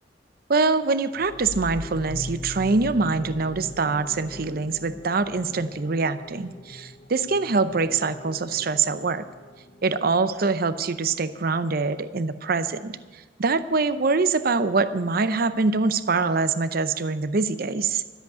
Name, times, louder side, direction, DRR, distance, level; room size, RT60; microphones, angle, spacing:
voice 1, 0.5-9.2 9.8-18.0, right 4 dB, 50° right, 12 dB, 0.6 m, -24 dB
sound 1, 1.2-10.5, left 2 dB, 40° left, 0.6 m, -41 dB
13.0 x 8.1 x 9.0 m, 1.4 s
head